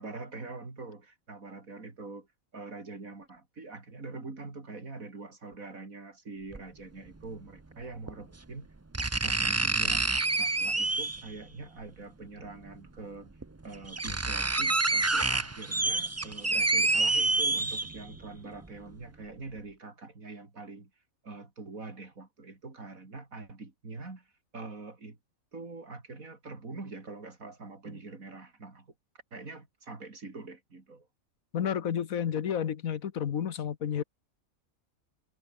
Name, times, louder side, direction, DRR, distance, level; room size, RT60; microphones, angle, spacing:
voice 1, 0.0-2.3 2.5-8.7 9.0-10.0 10.4-13.3 13.6-20.9 21.2-24.3 24.5-25.2 25.5-28.9 29.3-31.1, right 3 dB, 80° right, 4.0 m, -44 dB
sound 1, 6.5-6.6 8.1-8.2 8.9-11.3 12.7-12.8 13.4-13.5 13.7-18.2 18.6-18.7, right 3 dB, 20° right, 0.4 m, -27 dB
voice 2, 31.5-34.0, left 8 dB, 80° left, 1.5 m, -31 dB
omnidirectional pair, 1.4 m